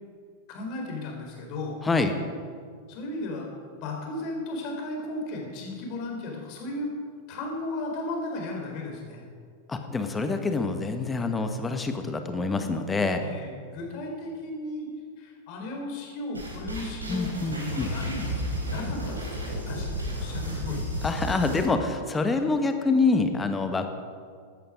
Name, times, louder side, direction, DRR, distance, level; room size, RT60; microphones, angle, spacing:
voice 1, 0.5-1.8 2.9-3.5 3.8-6.9 7.3-9.2 13.2-14.9 15.2-20.8, left 2 dB, 45° left, 0 dB, 4.2 m, -35 dB
voice 2, 1.8-2.1 9.7-13.3 17.1-17.9 21.0-23.9, left 3 dB, 15° left, 7 dB, 1.4 m, -26 dB
sound 1, 16.3-21.6, equal, 80° right, 4.3 m, -32 dB
15.5 x 12.5 x 5.1 m, 2.1 s
figure-of-eight pair, 90°, 0 cm